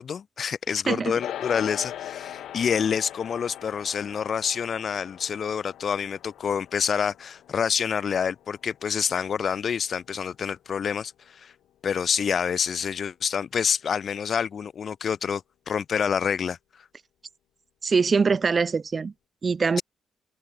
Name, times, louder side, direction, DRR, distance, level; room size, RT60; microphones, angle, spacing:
voice 1, 0.0-11.5 11.8-16.6, left 7 dB, 45° left, 2.9 m, -27 dB
voice 2, 0.9-1.2 17.8-19.1 19.4-19.8, right 5 dB, 30° right, 1.0 m, -23 dB
sound 1, 1.2-10.7, left 11 dB, 85° left, 6.5 m, -41 dB
cardioid pair, 155°, 0 cm